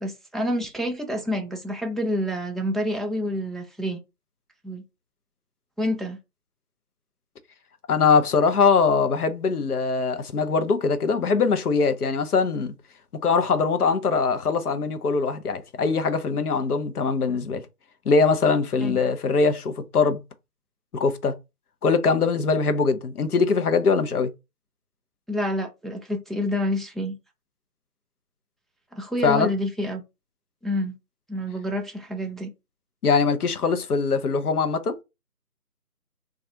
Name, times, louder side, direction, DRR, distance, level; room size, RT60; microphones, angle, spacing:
voice 1, 0.0-4.0 4.6-4.8 5.8-6.2 18.8-19.0 25.3-27.2 28.9-30.0 30.6-31.0 31.3-32.5, equal, ahead, 0.3 m, -28 dB
voice 2, 7.9-12.7 13.1-17.6 18.1-20.2 20.9-21.3 21.8-24.3 29.2-29.5 33.0-34.9, left 4 dB, 70° left, 0.6 m, -22 dB
2.3 x 2.2 x 2.7 m
figure-of-eight pair, 170°, 47 cm